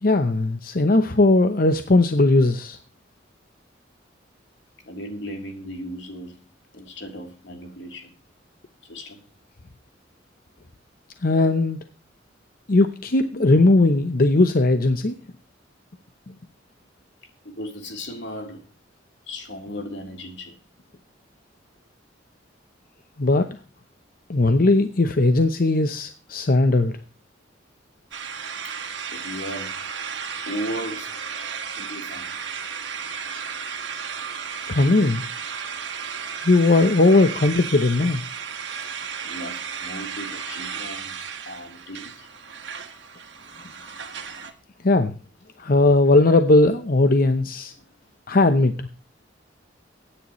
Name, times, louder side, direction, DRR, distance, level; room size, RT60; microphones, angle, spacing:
voice 1, 0.0-2.8 11.2-11.8 12.7-15.2 23.2-23.5 24.3-26.9 34.7-35.2 36.4-38.2 44.8-45.1 45.6-47.7 48.3-48.9, left 2 dB, 50° left, 9 dB, 0.8 m, -18 dB
voice 2, 4.8-6.4 6.7-8.2 8.8-9.2 13.3-13.6 17.4-18.7 19.3-20.6 28.6-28.8 29.1-29.8 30.5-32.3 39.2-42.3 47.8-47.9, equal, 65° left, 2 dB, 3.6 m, -36 dB
sound 1, 28.1-44.5, right 6 dB, 70° right, 2.0 m, -34 dB
23.5 x 9.9 x 3.1 m, 0.37 s
head